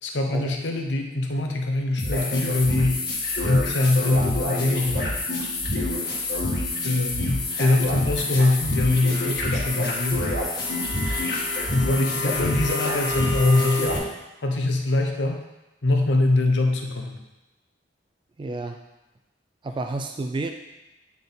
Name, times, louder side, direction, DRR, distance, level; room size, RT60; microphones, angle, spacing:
voice 1, 0.0-3.0 3.4-5.2 6.8-10.3 11.7-14.0 14.4-15.4 15.8-17.2, left 2 dB, 80° left, 3 dB, 0.8 m, -23 dB
sound 1, 2.0-14.0, left 2 dB, 65° left, 1.6 m, -27 dB
voice 2, 18.4-18.8 19.6-20.5, right 2 dB, 25° right, 5 dB, 0.3 m, -30 dB
9.0 x 3.7 x 3.9 m, 0.99 s
head